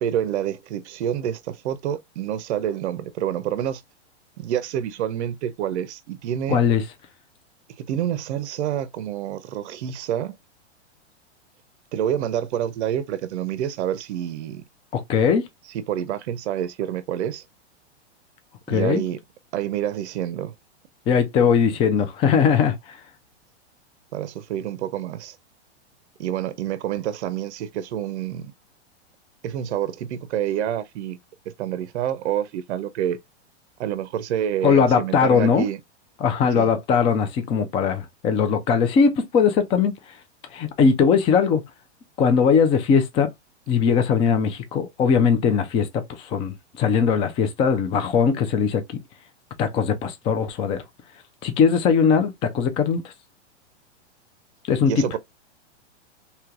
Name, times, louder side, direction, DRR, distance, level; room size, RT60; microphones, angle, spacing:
voice 1, 0.0-3.8 4.4-6.6 7.8-10.3 11.9-14.6 15.7-17.4 18.7-19.2 19.5-20.5 24.1-25.4 26.2-28.5 29.4-31.2 31.6-33.2 33.8-35.8 36.6-36.7 54.9-55.2, right 10 dB, 75° right, 0.6 m, -27 dB
voice 2, 6.5-6.8 14.9-15.4 18.7-19.0 21.1-22.7 34.6-35.6 36.2-39.9 40.5-41.6 42.2-43.3 43.7-48.8 49.6-50.8 51.4-53.0 54.7-54.9, left 6 dB, 15° left, 0.3 m, -20 dB
3.2 x 2.8 x 2.4 m
hypercardioid pair, 125°, 34 cm